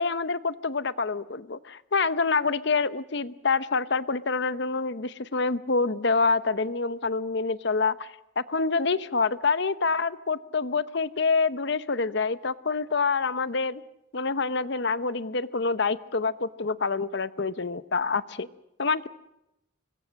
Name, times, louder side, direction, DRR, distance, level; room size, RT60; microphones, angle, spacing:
voice 1, 0.0-8.1 8.4-13.8 14.1-18.5 18.8-19.1, left 4 dB, 55° left, 15 dB, 0.8 m, -26 dB
25.5 x 21.5 x 6.4 m, 0.88 s
head